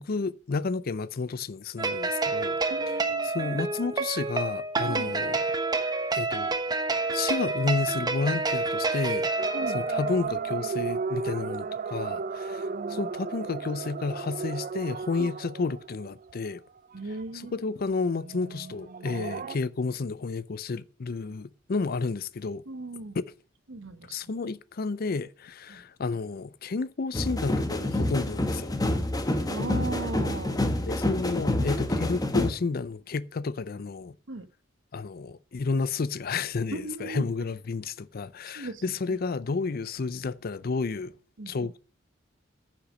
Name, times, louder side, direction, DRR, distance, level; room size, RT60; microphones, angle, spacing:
voice 1, 0.0-2.6 3.2-5.4 6.1-6.6 7.1-9.3 9.7-16.6 17.3-22.6 23.1-23.2 24.1-28.7 30.8-34.2 34.9-41.1 41.5-41.8, left 4 dB, 50° left, 0.5 m, -31 dB
sound 1, 1.8-10.2, right 3 dB, 20° right, 1.1 m, -28 dB
voice 2, 2.7-3.3 4.8-5.1 9.5-9.8 12.7-13.1 15.2-15.3 16.9-17.5 22.7-23.2 23.7-24.2 25.7-25.8 29.5-30.6 34.3-34.5 36.7-37.3 38.5-39.0 41.4-41.7, right 2 dB, 75° right, 1.2 m, -37 dB
sound 2, 9.4-16.3 16.9-17.0 17.2-17.3 18.1-19.6, right 5 dB, 45° right, 0.4 m, -34 dB
sound 3, 27.1-32.5, left 1 dB, 20° left, 1.2 m, -27 dB
10.0 x 5.9 x 6.3 m
head